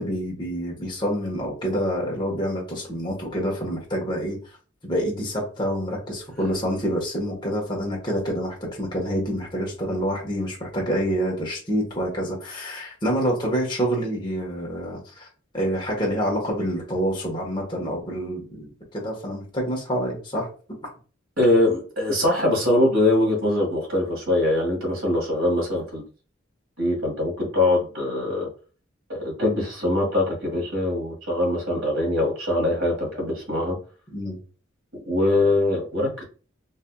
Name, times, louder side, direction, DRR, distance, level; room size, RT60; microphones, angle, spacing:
voice 1, 0.0-4.4 4.8-15.3 15.5-20.5 34.1-34.4, equal, 25° left, -2 dB, 1.2 m, -27 dB
voice 2, 21.4-26.0 26.8-28.5 29.1-33.8 35.1-36.2, left 1 dB, 80° right, -1 dB, 1.7 m, -22 dB
4.1 x 2.7 x 2.3 m, 0.37 s
head